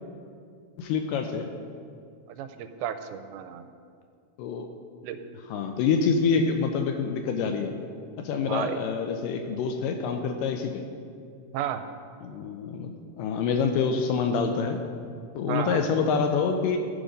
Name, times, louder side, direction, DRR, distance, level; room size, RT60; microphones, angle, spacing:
voice 1, 0.8-1.5 4.4-4.7 5.5-7.7 8.2-10.8 12.2-14.8 15.4-16.8, left 5 dB, 85° left, 5 dB, 2.0 m, -26 dB
voice 2, 2.4-3.7 5.0-5.2 8.5-8.8 11.5-11.8 15.5-15.8, right 10 dB, 85° right, 8 dB, 2.4 m, -32 dB
14.5 x 5.0 x 5.3 m, 2.3 s
omnidirectional pair, 4.3 m